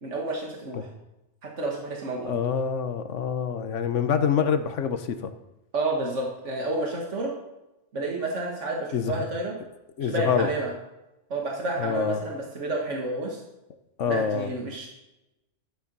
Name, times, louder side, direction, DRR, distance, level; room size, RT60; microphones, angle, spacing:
voice 1, 0.0-0.9 1.4-2.3 5.7-7.3 7.9-9.6 10.0-10.7 11.3-13.4 14.1-14.9, right 2 dB, 80° right, -1 dB, 2.1 m, -30 dB
voice 2, 2.2-5.3 8.9-9.3 10.0-10.5 11.8-12.2 14.0-14.5, left 7 dB, 80° left, 9 dB, 1.3 m, -26 dB
13.5 x 10.0 x 5.4 m, 0.96 s
omnidirectional pair, 1.2 m